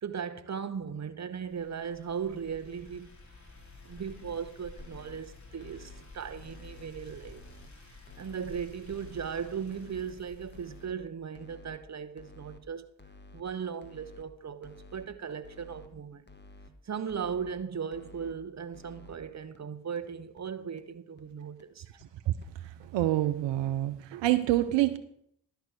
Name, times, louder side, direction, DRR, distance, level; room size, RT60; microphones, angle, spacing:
voice 1, 0.0-3.1 3.8-7.4 8.2-12.8 13.3-16.2 16.8-21.8, right 7 dB, 40° right, 1.1 m, -37 dB
sound 1, 1.5-10.9, left 3 dB, 40° left, 3.6 m, -51 dB
sound 2, 4.0-4.4 4.8-5.2 5.6-6.0 6.4-6.9 7.2-7.7 8.1-8.5 8.9-9.3 9.7-10.1 10.5-11.0 11.4-11.8 12.2-12.6 13.0-13.4 13.8-14.2 14.6-15.1 15.4-15.9 16.3-16.7 17.1-17.5 17.9-18.3 18.7-19.2 19.5-19.6 20.0-20.1 20.4-20.5 20.8-20.9 21.2-21.3 21.6-21.7 22.0-22.1 22.4-22.5 22.8-22.9 23.2-23.3, left 2 dB, 25° left, 1.7 m, -52 dB
voice 2, 22.9-25.0, right 15 dB, 75° right, 0.7 m, -26 dB
12.0 x 4.7 x 8.1 m
hypercardioid pair, 40°, 44 cm